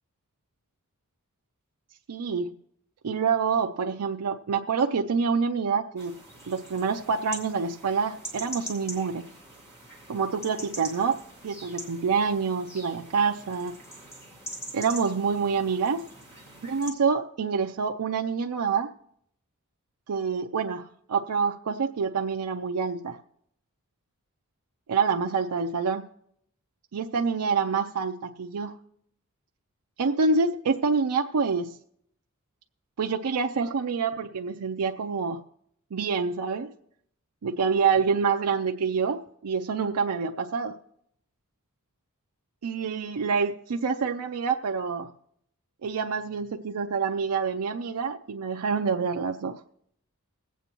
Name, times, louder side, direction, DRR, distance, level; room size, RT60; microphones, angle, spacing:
voice 1, 2.1-2.5 3.0-6.1 6.5-9.2 10.1-13.7 14.7-16.0 16.6-18.9 20.1-20.8 21.1-23.2 24.9-26.0 26.9-28.7 30.0-31.7 33.0-35.4 35.9-36.7 37.4-40.8 42.6-45.1 45.8-49.6, right 5 dB, 90° right, 4 dB, 0.5 m, -27 dB
sound 1, 6.0-16.9, equal, 10° left, 2.1 m, -43 dB
21.5 x 8.2 x 3.0 m, 0.72 s
head